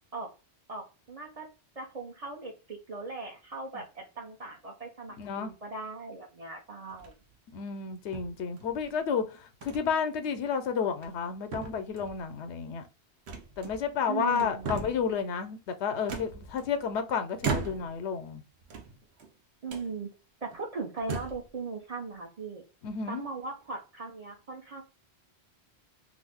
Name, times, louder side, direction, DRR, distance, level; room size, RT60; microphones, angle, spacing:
voice 1, 0.7-1.5 1.8-7.1 14.1-14.8 19.6-20.1 20.4-22.6 23.1-24.8, right 3 dB, 40° right, 0.6 m, -39 dB
voice 2, 5.2-5.5 7.5-12.9 13.6-18.4 22.8-23.3, left 6 dB, 90° left, 0.9 m, -31 dB
sound 1, 6.9-7.3 8.1-8.9 9.6-9.8 10.2-10.4 10.9-11.3 11.5-12.2 13.3-14.0 14.3-15.1 16.1-16.9 17.4-18.1 18.6-19.3 19.7-19.9 20.5-20.6 21.0-21.5, right 5 dB, 80° right, 0.9 m, -37 dB
2.6 x 2.4 x 3.3 m
omnidirectional pair, 1.1 m